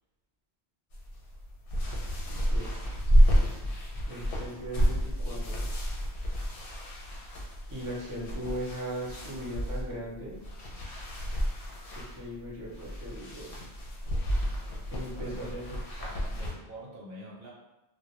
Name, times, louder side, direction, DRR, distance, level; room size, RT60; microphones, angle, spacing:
sound 1, 0.9-16.5, equal, 65° left, 0.7 m, -30 dB
voice 1, 4.1-5.6 7.7-10.4 12.2-13.6 14.9-16.0, right 1 dB, 30° right, -5 dB, 0.4 m, -39 dB
voice 2, 15.1-17.5, right 1 dB, 65° right, -4 dB, 0.7 m, -46 dB
2.2 x 2.1 x 2.9 m, 0.96 s
omnidirectional pair, 1.1 m